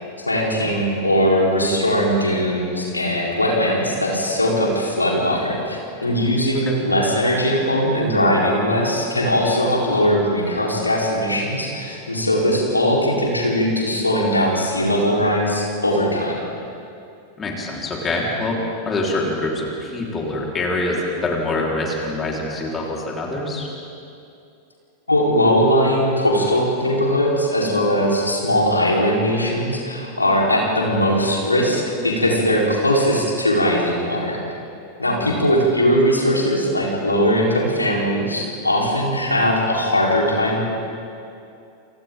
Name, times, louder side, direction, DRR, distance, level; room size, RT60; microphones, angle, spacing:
voice 1, 0.2-16.4 25.1-34.4 35.0-40.6, equal, 80° left, -3 dB, 4.5 m, -20 dB
voice 2, 17.4-18.6 18.9-23.7 35.2-35.4, left 2 dB, 20° left, -3 dB, 4.7 m, -25 dB
29.5 x 28.5 x 4.0 m, 2.6 s
figure-of-eight pair, 90°, 0 cm